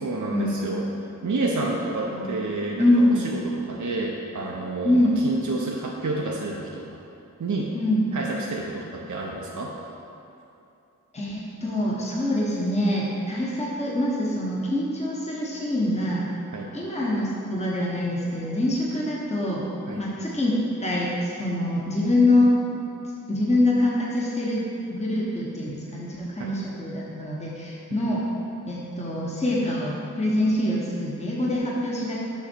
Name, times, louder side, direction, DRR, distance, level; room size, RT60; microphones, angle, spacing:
voice 1, 0.0-0.9 1.2-7.0 7.4-7.7 8.1-9.7 16.5-16.7 19.9-20.0 26.4-26.5 28.1-28.2, right 2 dB, 60° right, -1 dB, 0.7 m, -29 dB
voice 2, 2.8-3.2 4.8-5.1 7.7-8.0 11.1-16.3 16.7-19.6 20.0-20.5 20.8-22.5 23.3-24.6 24.9-28.2 28.7-32.2, left 1 dB, 20° left, -5 dB, 1.0 m, -24 dB
7.2 x 5.6 x 4.5 m, 2.7 s
wide cardioid pair, 45°, 33 cm